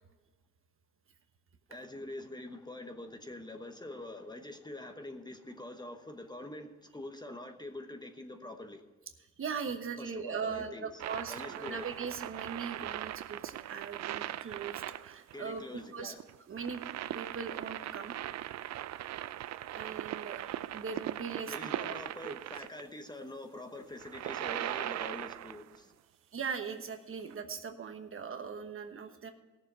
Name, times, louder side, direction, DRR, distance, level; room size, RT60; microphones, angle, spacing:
voice 1, 1.7-8.8 10.0-11.0 11.3-12.2 15.3-16.2 21.5-26.0, left 1 dB, 15° left, 6 dB, 1.1 m, -45 dB
voice 2, 9.4-15.6 15.9-16.1 16.5-16.8 17.1-18.1 19.7-21.9 22.2-22.3 26.3-29.3, right 6 dB, 45° right, 6 dB, 1.2 m, -40 dB
sound 1, 11.0-22.8 23.9-25.8 27.3-27.4, right 13 dB, 60° right, 0.5 m, -39 dB
16.0 x 7.1 x 5.6 m, 1.2 s
cardioid pair, 90°, 30 cm